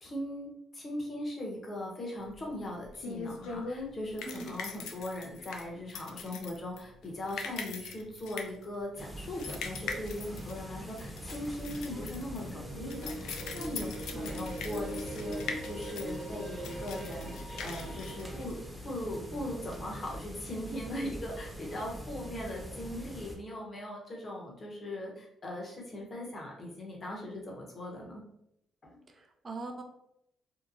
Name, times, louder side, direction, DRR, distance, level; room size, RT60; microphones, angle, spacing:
voice 1, 0.0-28.2 28.8-29.0, left 1 dB, 40° left, -1 dB, 0.9 m, -39 dB
sound 1, 2.3-19.0, left 5 dB, 85° left, 0.3 m, -42 dB
sound 2, 9.0-23.4, equal, ahead, 0.7 m, -43 dB
sound 3, 12.4-18.5, right 1 dB, 55° right, 1.1 m, -42 dB
voice 2, 14.1-14.5 29.2-29.8, right 3 dB, 35° right, 4 dB, 0.4 m, -42 dB
2.8 x 2.1 x 2.5 m, 0.78 s
cardioid pair, 90°, 0 cm